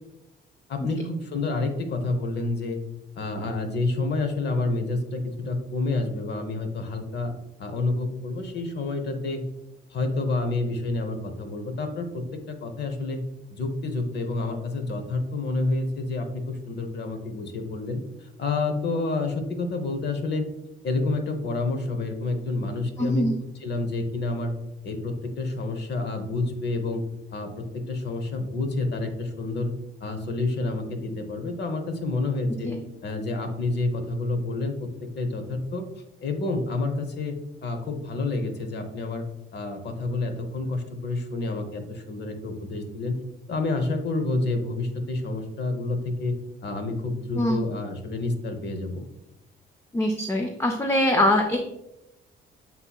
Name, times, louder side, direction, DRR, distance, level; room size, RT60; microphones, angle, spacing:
voice 1, 0.7-2.8 3.2-7.3 7.6-9.4 9.9-13.2 13.5-20.5 20.8-23.3 23.6-24.5 24.8-27.0 27.3-29.7 30.0-32.7 33.0-35.9 36.2-37.3 37.6-39.2 39.5-43.2 43.5-46.3 46.6-49.0, left 2 dB, 60° left, 6 dB, 0.8 m, -29 dB
voice 2, 23.0-23.3 32.6-32.8 47.4-47.6 49.9-51.6, left 1 dB, 15° left, 3 dB, 0.4 m, -23 dB
7.4 x 2.7 x 2.3 m, 0.90 s
cardioid pair, 90°, 20 cm